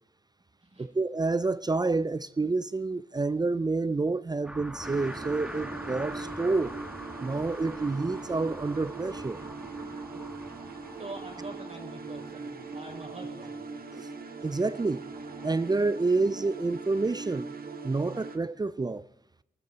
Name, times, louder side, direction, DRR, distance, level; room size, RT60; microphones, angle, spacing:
voice 1, 0.8-6.7 7.2-9.4 13.9-14.1 14.4-15.0 15.4-17.5 17.8-19.1, right 3 dB, 25° right, 0.5 m, -28 dB
sound 1, 4.4-15.5, equal, 5° right, 2.0 m, -44 dB
sound 2, 4.8-18.4, right 4 dB, 70° right, 1.5 m, -41 dB
voice 2, 11.0-13.6, right 2 dB, 45° right, 5.4 m, -44 dB
18.5 x 14.5 x 4.1 m
supercardioid pair, 40°, 16 cm